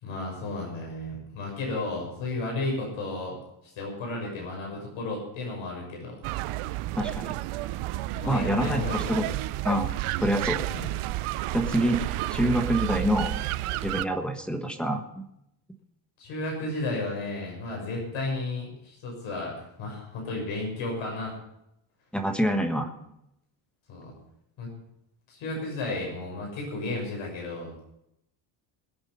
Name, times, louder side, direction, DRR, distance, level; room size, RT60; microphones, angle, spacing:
voice 1, 0.0-3.4 3.8-6.2 6.5-6.6 8.1-9.3 10.7-10.9 16.2-21.4 23.9-24.1 24.6-24.7 25.3-27.7, left 2 dB, 75° left, -1 dB, 6.4 m, -33 dB
sound 1, 6.2-14.1, right 17 dB, 85° right, 0.7 m, -31 dB
voice 2, 7.0-7.3 8.3-9.2 9.6-9.9 10.2-10.6 11.5-12.0 12.3-13.4 13.8-15.3 22.1-22.9, right 1 dB, ahead, 4 dB, 1.3 m, -26 dB
21.5 x 8.0 x 5.5 m, 0.79 s
cardioid pair, 180°, 49 cm